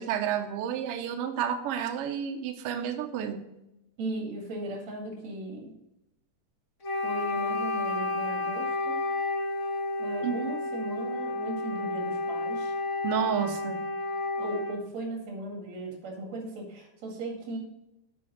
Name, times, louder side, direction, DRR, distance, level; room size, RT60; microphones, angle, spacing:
voice 1, 0.0-3.5 10.2-10.3 13.0-13.8, right 9 dB, 85° right, 6 dB, 1.3 m, -30 dB
voice 2, 4.0-5.7 7.0-9.0 10.0-12.7 14.4-17.6, right 2 dB, 60° right, 1 dB, 3.2 m, -37 dB
Wind instrument woodwind instrument, 6.8-14.8, left 2 dB, 80° left, 0.6 m, -31 dB
8.5 x 5.4 x 4.9 m, 0.86 s
omnidirectional pair, 3.6 m